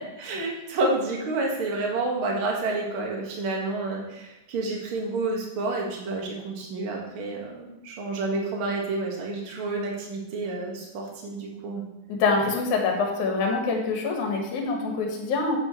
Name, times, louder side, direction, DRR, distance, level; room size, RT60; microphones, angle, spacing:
voice 1, 0.0-11.8, right 2 dB, 50° right, -1 dB, 2.0 m, -29 dB
voice 2, 12.1-15.6, left 4 dB, 65° left, 1 dB, 2.7 m, -25 dB
8.7 x 8.5 x 3.1 m, 0.92 s
omnidirectional pair, 3.9 m